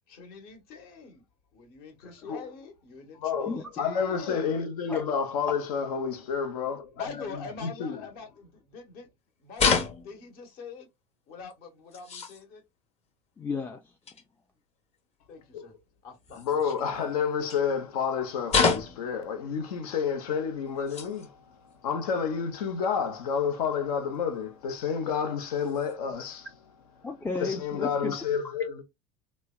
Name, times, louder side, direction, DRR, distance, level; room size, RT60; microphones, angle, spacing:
voice 1, 0.1-1.2 1.5-4.5 6.9-9.1 9.4-10.9 11.3-12.6 15.3-15.7 16.0-16.9, left 4 dB, 55° left, 1.1 m, -44 dB
voice 2, 3.1-8.1 15.5-15.7 16.3-21.4 21.8-26.5 27.4-28.8, left 6 dB, 85° left, 0.7 m, -30 dB
sound 1, 9.5-10.4 11.5-11.6 11.9-12.4 14.1-14.2 16.2-16.9 17.5-17.6 18.5-19.1 20.1-20.2 20.7-21.3 21.7-21.8 22.9-23.0 24.1-24.2 25.6-25.9, left 5 dB, 35° left, 0.8 m, -28 dB
voice 3, 13.4-13.8 27.0-28.1, left 4 dB, 10° left, 0.3 m, -33 dB
3.2 x 2.1 x 2.2 m
hypercardioid pair, 95°, 19 cm